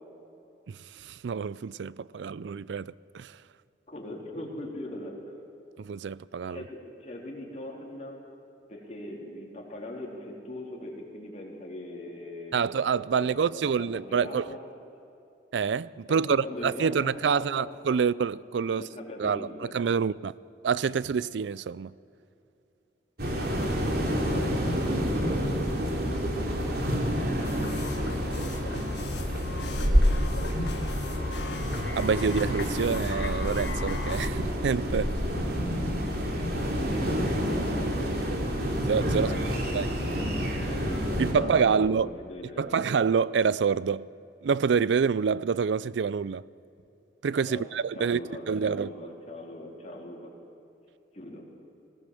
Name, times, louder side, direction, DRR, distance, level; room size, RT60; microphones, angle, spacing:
voice 1, 0.7-3.3 5.8-6.6 12.5-14.5 15.5-18.8 19.2-20.3 20.6-21.9 31.9-35.1 38.9-39.3 39.7-39.8 41.2-42.1 42.6-44.1 44.4-46.4 47.2-48.2 48.5-48.9, right 6 dB, 85° right, 0.4 m, -27 dB
voice 2, 3.9-5.2 6.5-8.2 8.7-12.7 13.1-14.6 16.2-17.8 18.6-19.7 36.3-38.1 39.1-42.9 47.5-50.3 51.1-51.4, left 1 dB, 40° left, 3.8 m, -40 dB
sound 1, 23.2-41.3, equal, 60° right, 3.2 m, -28 dB
sound 2, 27.4-34.3, left 3 dB, 75° left, 1.5 m, -39 dB
20.0 x 17.0 x 7.7 m
head